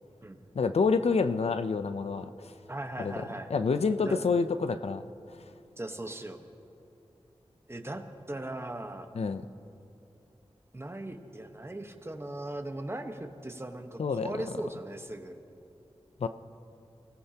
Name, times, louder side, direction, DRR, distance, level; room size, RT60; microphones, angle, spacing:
voice 1, 0.5-2.5 3.0-3.2 3.5-5.0 9.1-9.4 14.0-14.3 16.2-16.3, left 4 dB, 85° left, 10 dB, 0.5 m, -27 dB
voice 2, 2.7-3.5 4.0-4.2 5.8-6.4 7.7-9.1 10.7-15.4, right 1 dB, 25° right, 5 dB, 1.2 m, -38 dB
25.0 x 17.5 x 2.9 m, 2.8 s
wide cardioid pair, 65°, 10 cm